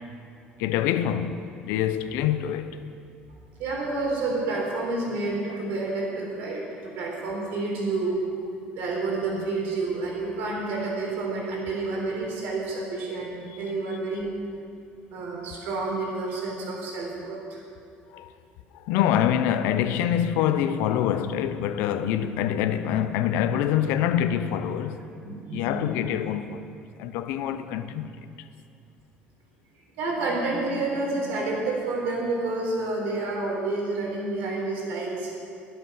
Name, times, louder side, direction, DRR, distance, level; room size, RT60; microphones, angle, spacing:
voice 1, 0.6-2.8 18.1-18.3 18.8-25.1 25.5-26.6 27.0-28.1, left 10 dB, 90° left, 0.8 m, -25 dB
voice 2, 3.6-8.1 8.7-14.3 15.1-17.6 25.2-26.1 27.1-27.2 30.0-35.3, right 3 dB, 70° right, 4.1 m, -29 dB
22.5 x 8.0 x 5.9 m
cardioid pair, 175°, 4 cm